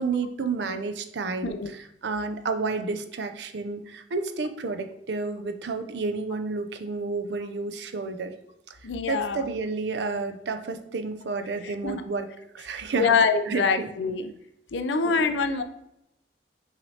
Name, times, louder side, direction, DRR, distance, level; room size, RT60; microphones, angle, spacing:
voice 1, 0.0-8.3 8.7-8.8 9.1-12.3 12.5-13.2 13.5-13.9 15.0-15.3, right 4 dB, 65° right, 8 dB, 0.5 m, -31 dB
voice 2, 8.8-9.5 11.6-12.0 12.9-14.3 14.7-15.6, left 5 dB, 75° left, 8 dB, 0.5 m, -25 dB
5.7 x 3.2 x 2.8 m, 0.82 s
head